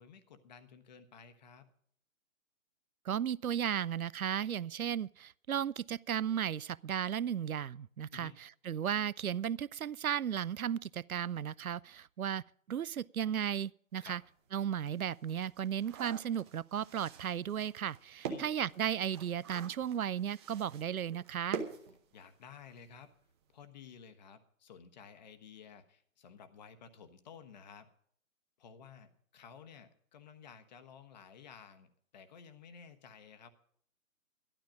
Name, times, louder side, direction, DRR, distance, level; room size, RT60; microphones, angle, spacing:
voice 1, 0.0-1.7 8.1-8.4 14.0-14.2 18.3-18.5 22.1-23.1 23.5-27.9 28.6-33.5, left 7 dB, 30° left, 1.2 m, -54 dB
voice 2, 3.1-12.4 12.7-14.2 14.5-21.6, right 9 dB, 85° right, 0.5 m, -35 dB
sound 1, 14.0-14.1 14.6-22.6 22.9-23.0 23.3-23.5, right 6 dB, 20° right, 1.0 m, -46 dB
12.5 x 12.5 x 5.1 m
figure-of-eight pair, 145°, 42 cm